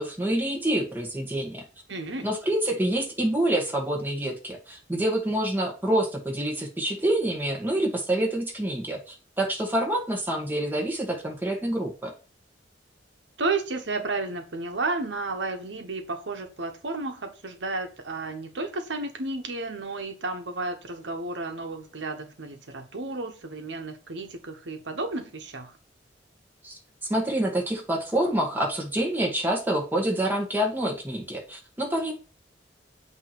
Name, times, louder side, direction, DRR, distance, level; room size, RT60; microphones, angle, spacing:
voice 1, 0.0-1.6 2.2-12.1 27.1-32.1, right 1 dB, 10° right, 1.7 m, -27 dB
voice 2, 1.9-2.3 13.4-25.8, right 3 dB, 85° right, 1.1 m, -32 dB
8.3 x 3.1 x 5.9 m
head